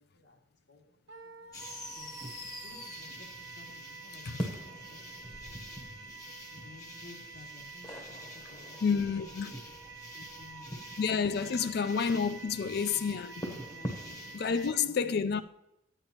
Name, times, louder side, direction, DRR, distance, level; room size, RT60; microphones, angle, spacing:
voice 1, 0.0-1.5 1.9-2.1 2.6-3.1 3.4-3.7 4.0-5.0 5.4-5.8 6.5-9.0 9.2-9.6 9.8-10.7 11.2-11.9 12.6-13.2 13.5-14.3 14.8-15.2, left 3 dB, 75° left, 2.2 m, -55 dB
Wind instrument woodwind instrument, 1.1-14.9, right 5 dB, 75° right, 0.8 m, -49 dB
sound 1, 1.5-14.7, equal, 20° left, 0.9 m, -44 dB
voice 2, 8.8-9.5 11.0-13.6 14.3-15.4, left 6 dB, 55° left, 0.4 m, -30 dB
11.5 x 8.9 x 2.9 m
head